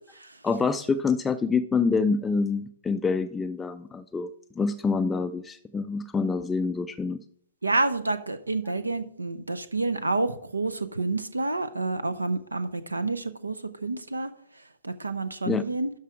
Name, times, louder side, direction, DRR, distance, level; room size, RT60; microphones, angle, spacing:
voice 1, 0.4-4.3 4.6-7.2 15.5-15.6, left 4 dB, 10° left, 8 dB, 0.3 m, -26 dB
voice 2, 7.6-14.3 14.8-15.9, right 3 dB, 80° right, 13 dB, 0.6 m, -29 dB
12.5 x 4.6 x 4.7 m, 0.66 s
figure-of-eight pair, 115°, 0 cm